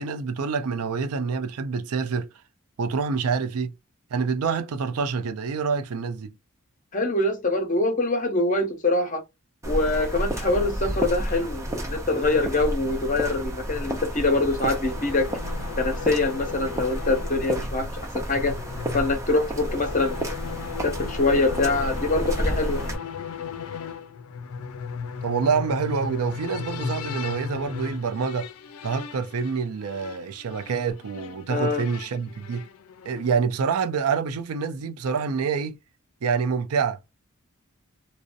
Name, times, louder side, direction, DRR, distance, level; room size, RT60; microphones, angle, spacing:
voice 1, 0.0-2.3 2.8-3.7 4.1-6.3 25.2-28.5 28.8-32.7 33.1-35.8 36.2-37.0, right 5 dB, 85° right, 0.4 m, -26 dB
voice 2, 6.9-9.2 9.7-15.3 15.8-17.9 18.3-18.5 18.9-20.3 20.8-22.8 31.5-31.8, left 2 dB, 35° left, 0.7 m, -24 dB
sound 1, 9.6-22.9, right 1 dB, 15° right, 0.5 m, -31 dB
sound 2, 14.3-33.4, left 6 dB, 80° left, 0.4 m, -37 dB
2.6 x 2.1 x 2.4 m
head